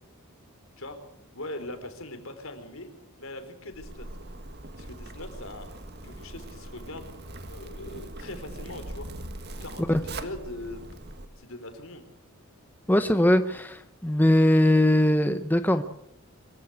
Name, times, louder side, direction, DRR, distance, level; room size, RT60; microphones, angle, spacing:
voice 1, 1.3-2.9 3.2-4.1 4.7-5.7 6.0-7.1 7.5-9.1 9.6-10.8 11.4-12.1, left 1 dB, 65° left, 8 dB, 4.0 m, -41 dB
Zipper (clothing), 3.7-11.2, right 1 dB, 45° right, 1.8 m, -41 dB
voice 2, 12.9-15.8, left 1 dB, 10° left, 9 dB, 0.8 m, -21 dB
24.5 x 16.0 x 8.6 m, 0.75 s
head